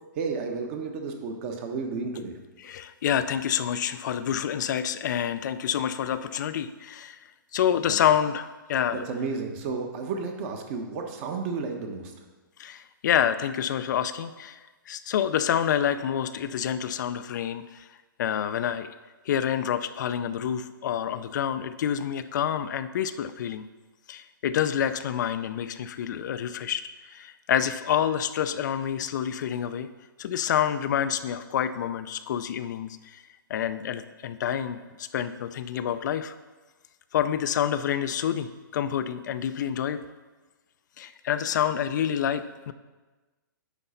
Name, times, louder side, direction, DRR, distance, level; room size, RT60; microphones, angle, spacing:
voice 1, 0.2-2.3 7.9-8.0 8.9-12.1, right 4 dB, 40° right, 3 dB, 1.2 m, -32 dB
voice 2, 2.7-7.2 7.5-9.0 12.6-14.6 14.9-17.9 18.2-18.9 19.3-23.7 24.1-29.9 30.2-33.2 33.5-36.3 37.1-40.0 41.0-42.7, left 9 dB, 55° left, 11 dB, 0.4 m, -28 dB
9.9 x 4.0 x 5.6 m, 1.2 s
hypercardioid pair, 140°, 12 cm